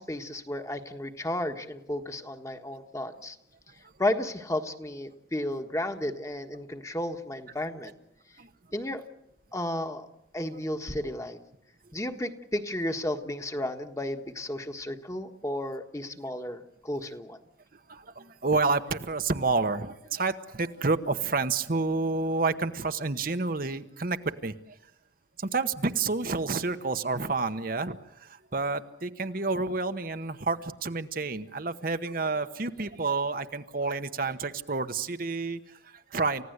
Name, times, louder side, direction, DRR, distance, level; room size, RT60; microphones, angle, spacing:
voice 1, 0.0-3.4 4.0-7.9 8.7-9.0 9.5-10.1 10.3-11.4 11.9-17.4, left 1 dB, 15° left, 6 dB, 1.5 m, -33 dB
voice 2, 17.7-24.8 25.4-36.4, right 3 dB, 50° right, 9 dB, 1.0 m, -29 dB
29.5 x 16.0 x 8.1 m, 0.81 s
head